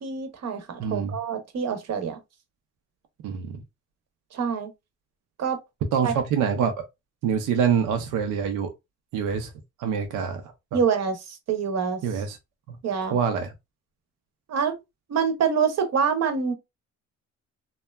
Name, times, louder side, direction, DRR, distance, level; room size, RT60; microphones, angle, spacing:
voice 1, 0.0-2.2 4.3-4.7 5.4-5.6 6.0-6.1 10.7-12.0 12.8-13.2 14.5-14.7 15.1-16.5, right 6 dB, 60° right, 0.8 m, -26 dB
voice 2, 0.8-1.2 3.2-3.6 5.9-6.7 7.2-8.7 9.1-9.5 9.8-10.8 12.0-12.4 12.7-12.8 13.1-13.5, right 7 dB, 85° right, 0.6 m, -25 dB
2.8 x 2.3 x 2.2 m
cardioid pair, 90°, 30 cm